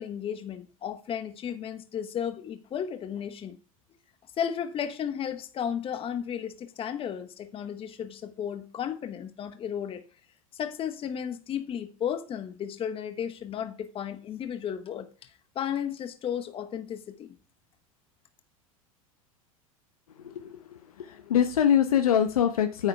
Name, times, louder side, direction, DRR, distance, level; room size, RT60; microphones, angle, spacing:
voice 1, 0.0-3.6 4.4-10.0 10.5-17.3, left 8 dB, 30° left, 1.2 m, -34 dB
voice 2, 20.2-22.9, left 9 dB, 85° left, 1.0 m, -24 dB
9.9 x 8.8 x 3.5 m
hypercardioid pair, 100°, 18 cm